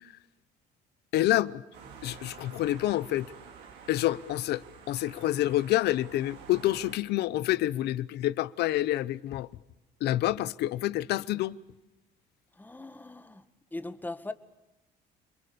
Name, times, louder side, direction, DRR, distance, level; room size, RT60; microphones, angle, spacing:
voice 1, 1.1-1.6 2.0-3.3 3.9-9.5 10.0-11.6, left 15 dB, 75° left, 0.9 m, -28 dB
sound 1, 1.7-7.0, right 6 dB, 85° right, 4.5 m, -49 dB
voice 2, 12.6-13.4 13.7-14.3, left 2 dB, 10° left, 1.7 m, -39 dB
29.5 x 22.5 x 7.0 m
cardioid pair, 110°, 17 cm